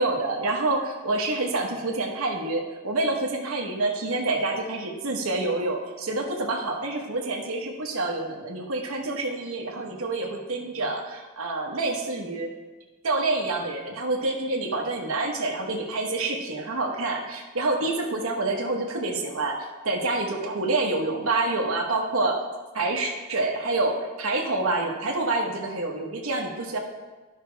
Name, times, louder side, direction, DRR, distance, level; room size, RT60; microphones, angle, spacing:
voice 1, 0.0-12.5 13.0-22.4 22.7-26.8, right 2 dB, 70° right, 1 dB, 1.2 m, -27 dB
11.5 x 5.8 x 3.4 m, 1.3 s
head